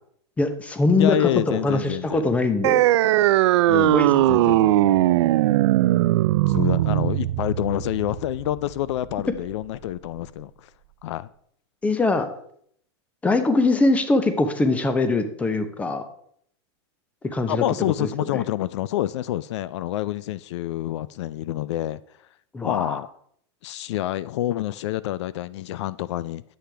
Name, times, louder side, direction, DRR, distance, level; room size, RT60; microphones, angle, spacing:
voice 1, 0.4-2.8 3.9-4.1 11.8-12.3 13.2-16.0 17.2-17.6 18.0-18.4 22.5-23.0, left 2 dB, 10° left, 9 dB, 0.7 m, -22 dB
voice 2, 0.9-2.2 3.7-5.0 6.5-10.7 11.0-11.3 17.5-22.0 22.6-23.1 23.6-26.4, left 13 dB, 80° left, 18 dB, 0.4 m, -27 dB
sound 1, 2.6-9.6, right 15 dB, 75° right, 0.4 m, -20 dB
10.0 x 7.6 x 3.4 m, 0.67 s
supercardioid pair, 150°, 15 cm